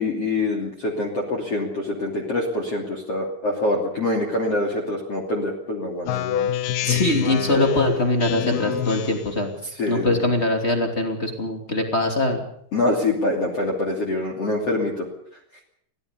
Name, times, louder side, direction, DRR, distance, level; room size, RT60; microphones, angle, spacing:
voice 1, 0.0-6.1 9.8-10.3 12.7-15.1, left 2 dB, 35° left, 1 dB, 3.1 m, -25 dB
Speech synthesizer, 6.1-9.4, left 10 dB, 70° left, 2.4 m, -27 dB
voice 2, 6.8-9.5 9.9-12.4, left 2 dB, 20° left, 4 dB, 1.9 m, -22 dB
23.5 x 17.0 x 6.9 m, 0.67 s
omnidirectional pair, 5.9 m